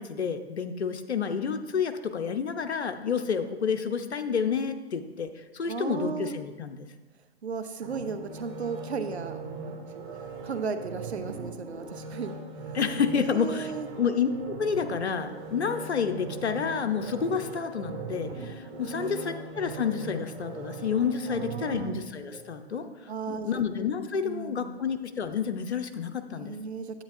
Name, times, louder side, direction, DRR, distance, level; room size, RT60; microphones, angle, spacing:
voice 1, 0.0-6.9 12.7-13.7 14.0-22.9 23.3-26.5, left 6 dB, 80° left, 8 dB, 0.9 m, -29 dB
voice 2, 5.6-6.3 7.4-9.4 10.4-12.3 13.2-13.9 18.8-19.3 21.3-22.0 23.1-23.6 24.2-24.8 26.3-27.0, right 5 dB, 80° right, 9 dB, 0.8 m, -35 dB
sound 1, 7.8-22.9 23.3-23.4, right 4 dB, 35° right, 2.0 m, -40 dB
10.0 x 8.6 x 2.7 m, 1.2 s
figure-of-eight pair, 125°, 33 cm